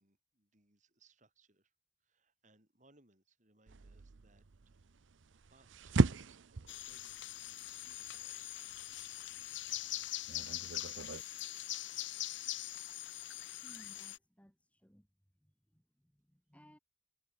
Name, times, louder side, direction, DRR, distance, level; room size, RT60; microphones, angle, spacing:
voice 1, 0.0-1.7 2.0-4.8 5.3-8.7, right 3 dB, 40° right, 6.7 m, -70 dB
sound 1, 3.7-11.2, right 3 dB, 80° right, 0.7 m, -37 dB
sound 2, 6.7-14.2, left 14 dB, 75° left, 1.2 m, -42 dB
voice 2, 13.6-15.1 15.4-16.8, equal, 5° left, 7.4 m, -62 dB
head